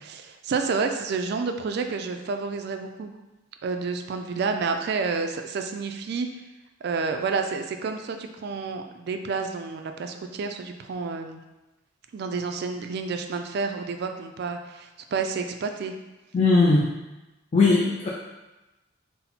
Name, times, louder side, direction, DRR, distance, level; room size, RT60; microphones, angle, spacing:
voice 1, 0.0-3.1 3.6-6.3 6.8-11.4 12.1-16.0, right 4 dB, 55° right, 5 dB, 0.3 m, -29 dB
voice 2, 16.3-16.9 17.5-18.1, left 3 dB, 35° left, -4 dB, 0.4 m, -19 dB
4.2 x 2.0 x 4.0 m, 1.0 s
head